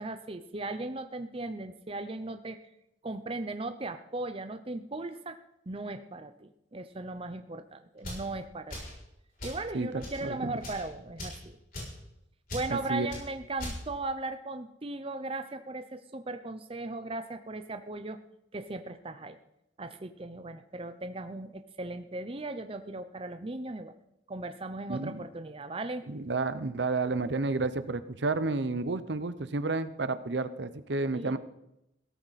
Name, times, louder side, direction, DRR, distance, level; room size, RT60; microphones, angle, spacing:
voice 1, 0.0-2.7 3.0-5.4 5.7-8.8 9.4-11.6 12.5-18.2 18.5-19.4 19.8-23.9 24.3-26.1 31.1-31.4, right 2 dB, 30° right, 8 dB, 0.7 m, -37 dB
sound 1, 8.0-8.3 8.7-9.0 9.4-9.6 10.0-10.2 10.6-10.8 11.2-11.4 11.7-12.0 12.5-12.7 13.1-13.2 13.6-13.8, left 1 dB, 50° left, 6.8 m, -39 dB
voice 2, 9.7-10.5 12.7-13.1 24.9-25.2 26.1-31.4, right 3 dB, 65° right, 12 dB, 0.8 m, -31 dB
17.0 x 14.0 x 4.2 m, 0.84 s
head